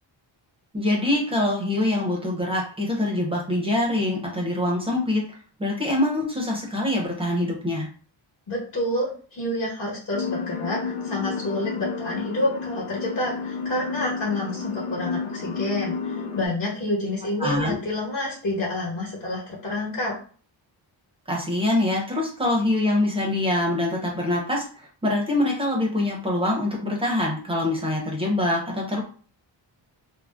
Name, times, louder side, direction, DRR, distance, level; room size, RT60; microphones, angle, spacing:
voice 1, 0.7-5.2 5.6-7.9 17.4-17.8 21.3-24.6 25.0-29.0, left 1 dB, 10° right, -2 dB, 0.6 m, -24 dB
voice 2, 8.5-20.1, left 1 dB, 40° left, -6 dB, 1.1 m, -28 dB
sound 1, 10.1-16.5, left 5 dB, 85° left, 0.6 m, -31 dB
2.5 x 2.0 x 3.4 m, 0.42 s
wide cardioid pair, 175°, 46 cm